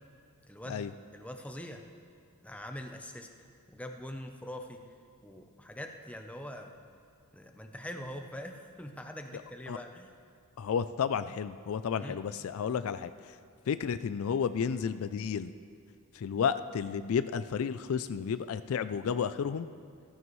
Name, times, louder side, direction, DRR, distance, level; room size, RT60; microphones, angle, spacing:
voice 1, 0.5-0.9 1.1-1.8 2.4-3.3 3.7-4.8 5.2-6.7 7.3-10.1 11.9-12.2, left 1 dB, 5° left, 4 dB, 0.7 m, -43 dB
voice 2, 10.6-13.1 13.7-15.5 16.2-19.7, left 7 dB, 65° left, 12 dB, 0.3 m, -32 dB
15.5 x 14.5 x 3.1 m, 2.3 s
head